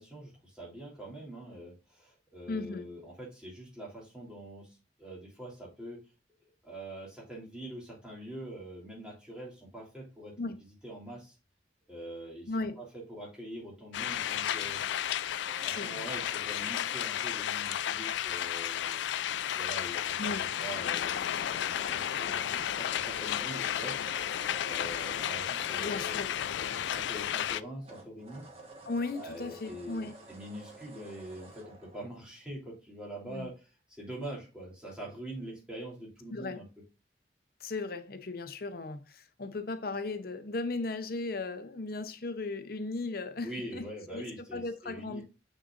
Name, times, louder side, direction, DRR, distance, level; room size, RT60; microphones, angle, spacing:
voice 1, 0.0-6.0 6.6-10.4 10.8-11.4 11.9-14.8 15.6-19.0 19.3-24.0 24.6-28.4 29.1-33.7 34.0-36.7 43.4-45.2, right 1 dB, 5° right, 3.1 m, -44 dB
voice 2, 2.5-2.9 10.4-10.6 12.5-12.8 15.7-16.0 20.2-20.4 25.8-26.3 28.9-30.1 33.2-33.5 36.3-36.6 37.6-44.2 44.5-45.2, left 3 dB, 55° left, 0.7 m, -36 dB
sound 1, 13.9-27.6, left 10 dB, 80° left, 0.3 m, -33 dB
sound 2, 15.4-18.9 21.3-27.5 27.8-32.1, right 2 dB, 35° right, 1.5 m, -52 dB
6.5 x 6.3 x 2.5 m
head